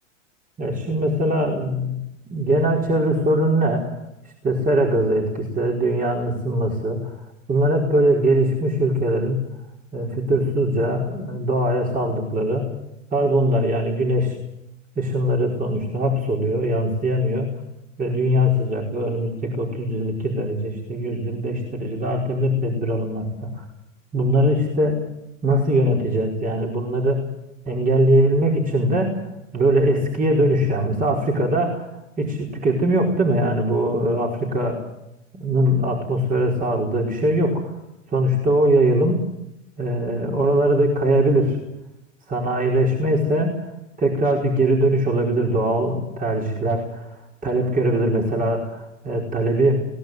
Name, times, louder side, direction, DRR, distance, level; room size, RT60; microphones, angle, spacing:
voice 1, 0.6-2.0 2.3-4.0 4.4-9.4 9.9-12.7 13.1-14.4 14.9-17.5 18.0-23.6 24.1-25.0 25.4-27.3 27.6-29.2 29.5-31.9 32.2-34.8 35.3-37.8 38.1-39.2 39.8-41.6 42.3-43.7 44.0-49.8, right 1 dB, 20° right, -1 dB, 4.9 m, -21 dB
22.0 x 18.0 x 8.2 m, 0.89 s
hypercardioid pair, 110°, 38 cm